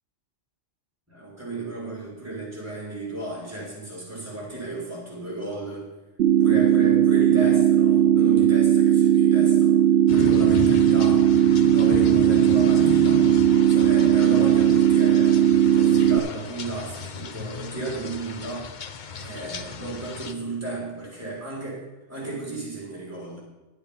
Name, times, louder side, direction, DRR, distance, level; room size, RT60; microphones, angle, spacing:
voice 1, 1.1-5.9 6.4-9.8 10.1-11.2 11.7-13.3 13.7-15.4 15.7-18.7 19.1-23.4, right 2 dB, 10° right, -4 dB, 3.9 m, -33 dB
sound 1, 6.2-16.2, right 10 dB, 70° right, 0.8 m, -18 dB
sound 2, 10.1-20.3, left 6 dB, 50° left, 0.7 m, -35 dB
10.5 x 8.8 x 5.7 m, 1.1 s
omnidirectional pair, 1.2 m